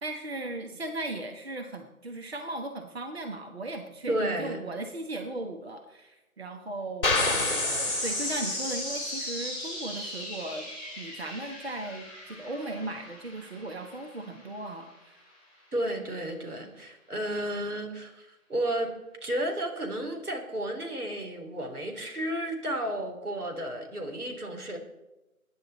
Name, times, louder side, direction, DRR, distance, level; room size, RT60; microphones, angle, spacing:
voice 1, 0.0-10.7 11.0-15.2, right 2 dB, 45° right, 4 dB, 1.3 m, -37 dB
voice 2, 4.1-4.6 15.7-18.9 19.2-24.8, right 1 dB, 85° right, 3 dB, 3.7 m, -32 dB
sound 1, 7.0-8.8, left 3 dB, 40° left, 1.7 m, -29 dB
sound 2, 7.1-13.9, left 1 dB, 5° right, 6.2 m, -35 dB
21.0 x 10.0 x 4.2 m, 0.98 s
figure-of-eight pair, 170°, 44 cm